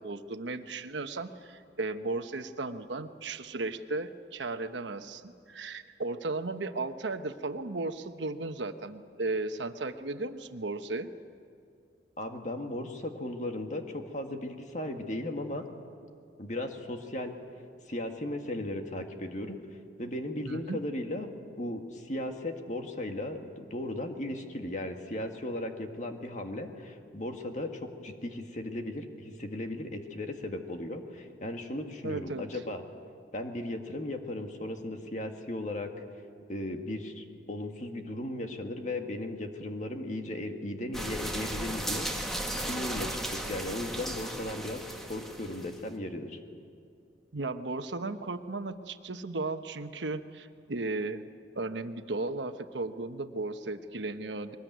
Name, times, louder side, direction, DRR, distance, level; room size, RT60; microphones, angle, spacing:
voice 1, 0.0-11.1 20.4-20.8 32.0-32.4 47.3-51.2 51.5-54.6, right 3 dB, 75° right, 8 dB, 1.1 m, -35 dB
voice 2, 12.2-15.6 16.4-17.3 17.9-19.6 20.0-21.3 21.6-32.8 33.3-35.9 36.5-44.8 45.1-46.4, left 1 dB, 40° left, 4 dB, 1.9 m, -36 dB
sound 1, 40.9-45.8, right 1 dB, ahead, 1.8 m, -36 dB
22.0 x 20.0 x 9.3 m, 2.4 s
head